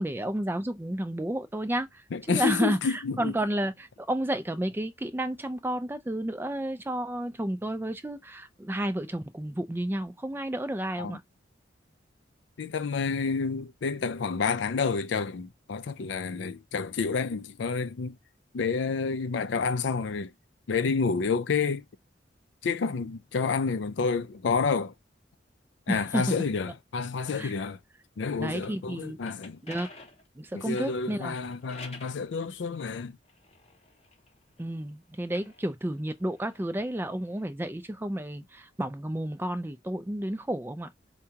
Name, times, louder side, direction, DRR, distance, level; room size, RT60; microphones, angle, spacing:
voice 1, 0.0-2.0 2.3-11.2 25.9-26.3 27.4-27.5 28.4-29.2 29.6-29.9 30.4-31.3 34.6-40.9, right 1 dB, 10° right, 0.4 m, -31 dB
voice 2, 2.1-3.4 11.0-11.2 12.6-18.2 18.5-20.3 20.7-21.8 22.6-24.9 25.9-27.8 28.2-29.6 30.5-33.2, left 5 dB, 80° left, 0.4 m, -29 dB
sound 1, 29.0-32.2 32.9-34.6 35.2-37.5, left 3 dB, 35° left, 0.8 m, -50 dB
4.7 x 2.3 x 2.8 m
head